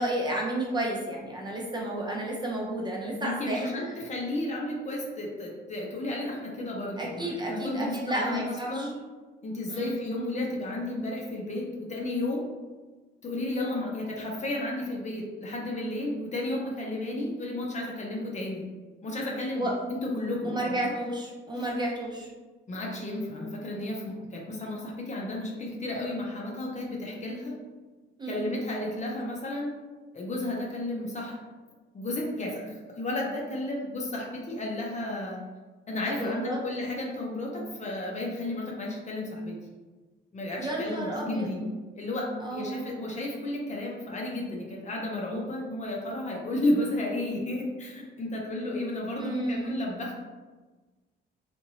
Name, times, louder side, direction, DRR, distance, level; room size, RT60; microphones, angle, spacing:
voice 1, 0.0-3.7 7.0-8.9 9.7-10.0 19.5-19.7 20.4-22.3 28.2-28.4 36.1-36.6 40.6-41.6 42.4-42.9 49.2-49.9, right 1 dB, 20° right, -3 dB, 0.7 m, -32 dB
voice 2, 3.1-8.9 9.4-12.5 13.2-18.6 19.0-20.9 22.7-27.6 28.2-29.7 30.1-31.4 31.9-35.4 35.9-39.6 40.3-41.6 41.9-50.2, left 1 dB, 35° left, -2 dB, 0.7 m, -33 dB
2.8 x 2.5 x 2.7 m, 1.3 s
cardioid pair, 90°, 20 cm